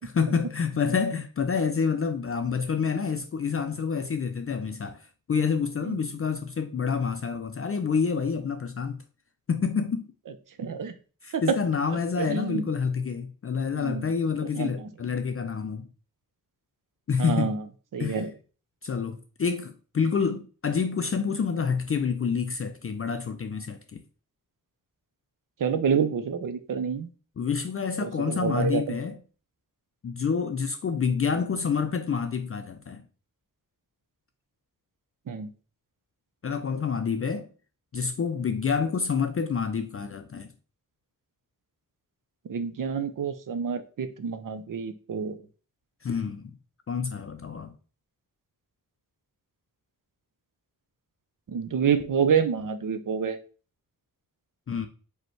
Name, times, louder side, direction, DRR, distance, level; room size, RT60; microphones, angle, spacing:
voice 1, 0.0-5.0 5.3-9.0 9.5-10.1 11.2-15.9 17.1-17.5 18.0-18.2 18.8-24.0 27.4-29.2 30.0-33.0 36.4-37.5 37.9-40.5 46.0-46.6 46.9-47.7 54.7-54.9, left 6 dB, 40° left, 0.4 m, -28 dB
voice 2, 10.6-10.9 11.3-11.6 12.2-12.6 13.8-14.1 14.5-14.7 17.2-17.6 17.9-18.3 25.6-27.1 28.0-29.0 35.3-35.5 42.5-45.4 51.5-53.4, right 6 dB, 70° right, 0.6 m, -27 dB
5.1 x 2.2 x 4.5 m
wide cardioid pair, 65°, 33 cm